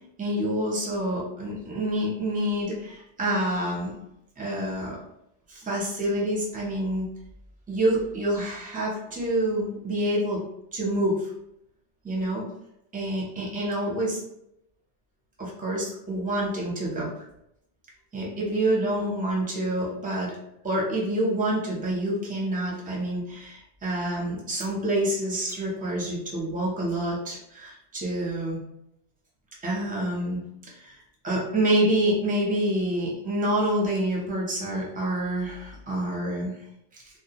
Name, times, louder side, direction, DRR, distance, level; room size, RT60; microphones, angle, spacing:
voice 1, 0.2-3.9 4.4-5.0 5.5-7.1 7.7-10.4 10.7-11.3 12.0-12.5 12.9-14.2 15.4-17.1 18.1-20.4 20.6-28.6 29.6-30.4 30.7-31.0 31.2-36.5 36.9-37.0, right 1 dB, 15° right, -4 dB, 0.4 m, -27 dB
2.2 x 2.1 x 2.8 m, 0.80 s
omnidirectional pair, 1.1 m